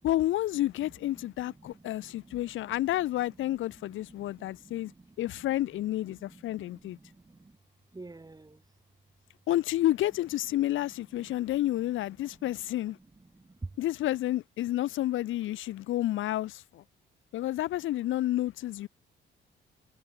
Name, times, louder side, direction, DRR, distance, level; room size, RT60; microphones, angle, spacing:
voice 1, 0.0-4.9 5.2-7.0 9.5-13.0 13.8-16.8 17.3-18.9, left 14 dB, 80° left, 1.5 m, -30 dB
voice 2, 1.2-2.4 2.7-2.8 3.8-5.5 6.1-7.6 7.9-8.6 11.2-11.5 12.4-12.5 13.3-13.7, right 3 dB, 20° right, 6.5 m, -49 dB
cardioid pair, 90°, 20 cm